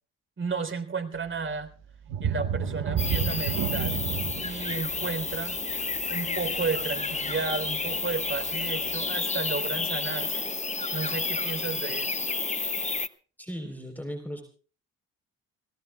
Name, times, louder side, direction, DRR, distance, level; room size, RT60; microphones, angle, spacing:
voice 1, 0.4-1.7 2.2-4.0 4.4-5.6 6.1-10.5 10.9-12.3, right 4 dB, 35° right, 9 dB, 3.8 m, -33 dB
sound 1, 2.1-7.5 8.0-8.1 8.6-8.7, right 7 dB, 70° right, 1.5 m, -31 dB
sound 2, 3.0-13.1, left 4 dB, 20° left, 1.2 m, -30 dB
voice 2, 13.4-14.4, equal, 5° left, 4 dB, 3.9 m, -36 dB
29.5 x 18.0 x 2.3 m, 0.40 s
hypercardioid pair, 55°, 33 cm